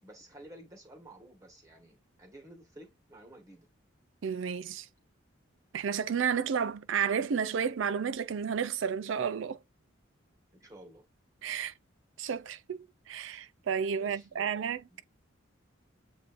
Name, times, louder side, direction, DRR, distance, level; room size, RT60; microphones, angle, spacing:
voice 1, 0.0-3.7 10.5-11.0 13.9-14.5 14.9-15.0, right 1 dB, 15° right, 1.4 m, -52 dB
voice 2, 4.2-4.9 5.7-9.6 11.4-11.7 12.2-15.0, right 7 dB, 70° right, 0.4 m, -32 dB
7.7 x 2.7 x 2.5 m
head